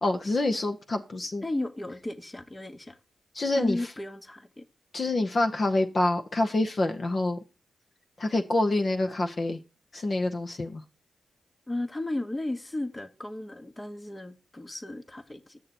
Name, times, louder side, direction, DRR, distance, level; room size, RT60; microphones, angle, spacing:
voice 1, 0.0-1.4 3.3-3.8 4.9-7.4 8.2-9.6 9.9-10.8, left 2 dB, 50° left, 0.9 m, -26 dB
voice 2, 1.4-3.0 3.5-4.7 11.7-15.6, left 1 dB, 25° left, 1.1 m, -34 dB
7.7 x 6.6 x 4.2 m
supercardioid pair, 50°, 0 cm